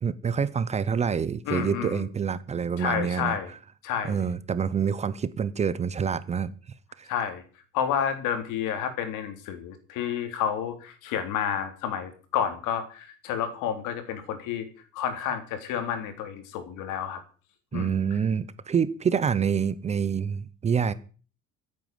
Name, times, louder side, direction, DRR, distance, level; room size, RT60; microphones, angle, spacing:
voice 1, 0.0-3.4 4.0-6.5 7.0-7.1 17.7-20.9, right 7 dB, 20° right, 16 dB, 0.7 m, -27 dB
voice 2, 1.5-2.1 2.8-3.5 3.8-4.2 7.1-7.4 7.7-14.7 14.9-17.2 17.7-18.0, left 8 dB, 75° left, 8 dB, 3.7 m, -30 dB
15.0 x 9.1 x 7.8 m, 0.40 s
cardioid pair, 175°, 31 cm